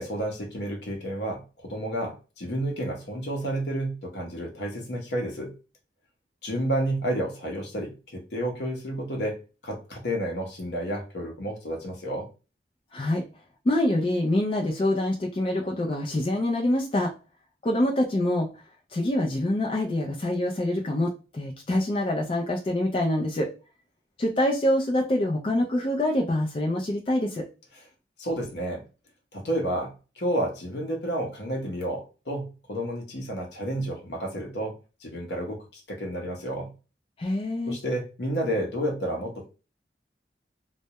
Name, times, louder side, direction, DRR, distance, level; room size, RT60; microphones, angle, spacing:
voice 1, 0.0-5.6 6.4-9.4 9.6-12.3 28.2-28.8 29.3-34.7 35.0-36.7 37.7-39.5, right 1 dB, 70° left, 1 dB, 0.7 m, -31 dB
voice 2, 12.9-13.2 13.6-17.1 17.6-18.5 18.9-23.5 24.2-27.5 37.2-37.8, left 1 dB, 30° left, -1 dB, 0.3 m, -25 dB
2.2 x 2.0 x 2.8 m, 0.31 s
head